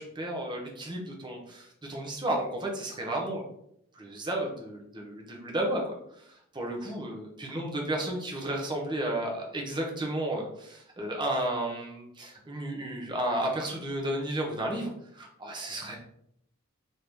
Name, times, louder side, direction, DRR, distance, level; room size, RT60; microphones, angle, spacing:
voice 1, 0.0-3.5 3.9-16.0, right 1 dB, 20° right, 0 dB, 0.6 m, -33 dB
3.1 x 2.6 x 3.3 m, 0.74 s
head